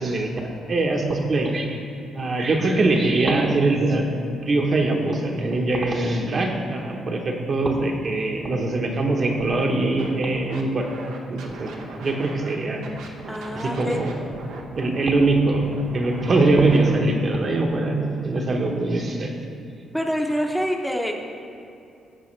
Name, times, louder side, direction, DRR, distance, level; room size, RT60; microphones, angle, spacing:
voice 1, 0.0-1.8 2.1-10.9 11.3-11.7 12.0-12.8 13.5-14.1 14.8-15.6 15.9-19.3, right 2 dB, 45° right, 1 dB, 1.0 m, -22 dB
Scratching (performance technique), 9.3-9.6 10.0-12.5 12.8-17.0, right 3 dB, 85° right, 0.8 m, -39 dB
voice 2, 13.3-14.0 19.9-21.2, equal, ahead, 1 dB, 0.8 m, -26 dB
14.5 x 4.9 x 3.3 m, 2.6 s
cardioid pair, 90°, 0 cm